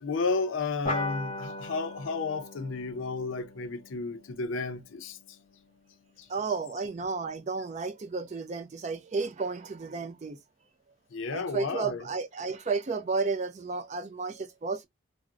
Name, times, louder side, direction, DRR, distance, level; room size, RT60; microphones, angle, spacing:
voice 1, 0.0-5.4 6.2-6.3 11.1-12.1, left 4 dB, 75° left, 0.5 m, -32 dB
sound 1, 0.8-5.8, left 2 dB, 30° left, 0.8 m, -39 dB
voice 2, 6.3-10.4 11.3-14.9, right 4 dB, 35° right, 0.3 m, -32 dB
3.5 x 2.0 x 2.4 m
head